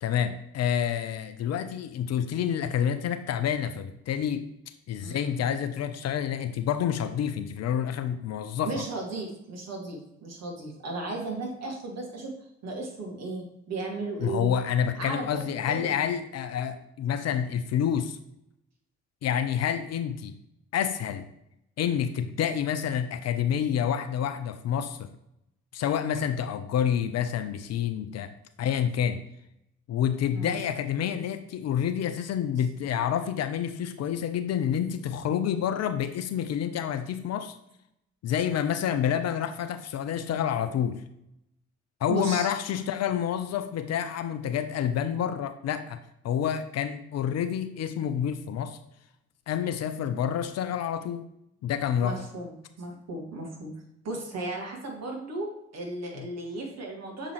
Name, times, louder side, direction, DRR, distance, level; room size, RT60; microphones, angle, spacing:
voice 1, 0.0-4.5 4.9-8.8 14.2-18.2 19.2-20.3 20.7-21.3 21.8-25.1 25.7-28.3 28.6-29.2 29.9-37.5 38.2-41.0 42.0-46.0 46.2-48.8 49.5-51.3 51.6-52.2 56.2-56.3, left 9 dB, 50° left, 10 dB, 0.6 m, -28 dB
voice 2, 5.0-5.4 8.6-12.3 12.6-14.5 14.9-16.1 25.9-26.1 30.3-30.7 42.1-42.5 52.0-53.7 54.0-57.3, right 2 dB, 50° right, -1 dB, 2.0 m, -35 dB
6.7 x 4.8 x 3.1 m, 0.80 s
figure-of-eight pair, 40°, 34 cm